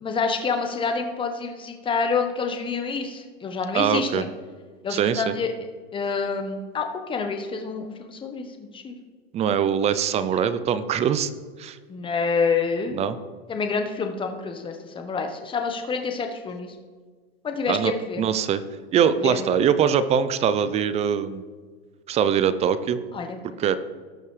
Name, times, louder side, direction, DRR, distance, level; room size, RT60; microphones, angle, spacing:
voice 1, 0.0-4.3 4.8-5.5 5.9-9.0 11.9-13.0 13.5-16.7 17.4-18.2 19.2-19.4 23.1-23.4, left 5 dB, 15° left, 5 dB, 1.1 m, -27 dB
voice 2, 3.7-4.3 4.9-5.3 9.3-11.3 11.6-11.8 12.9-13.2 17.7-18.6 18.9-21.4 22.1-23.0 23.6-23.8, right 8 dB, 20° right, 13 dB, 0.5 m, -22 dB
17.5 x 6.7 x 3.3 m, 1.5 s
hypercardioid pair, 125°, 32 cm